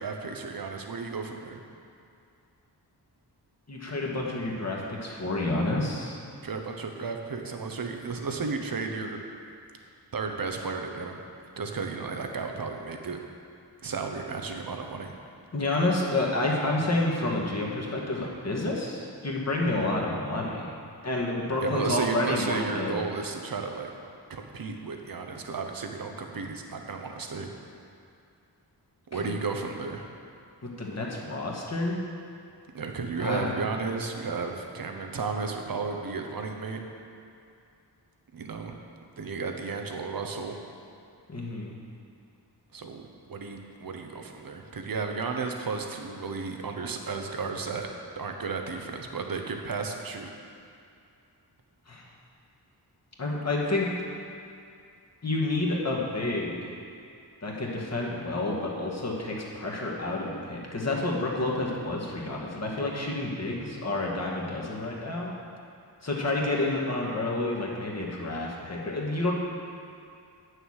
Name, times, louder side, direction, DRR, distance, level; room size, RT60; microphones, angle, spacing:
voice 1, 0.0-1.6 6.4-9.2 10.1-11.2 11.6-13.2 13.8-15.1 21.6-23.9 24.3-27.5 29.1-30.0 32.7-36.8 38.3-38.8 39.2-40.6 42.7-43.0 43.3-47.9 48.2-50.3, right 4 dB, 55° right, 4 dB, 1.0 m, -33 dB
voice 2, 3.7-6.2 15.5-20.7 21.0-23.0 29.1-29.3 30.6-32.0 33.2-33.6 41.3-41.8 51.9-52.1 53.2-53.9 55.2-56.7 57.4-65.3 66.0-69.3, left 2 dB, 40° left, -3 dB, 1.8 m, -29 dB
9.1 x 6.6 x 6.5 m, 2.5 s
wide cardioid pair, 85°, 41 cm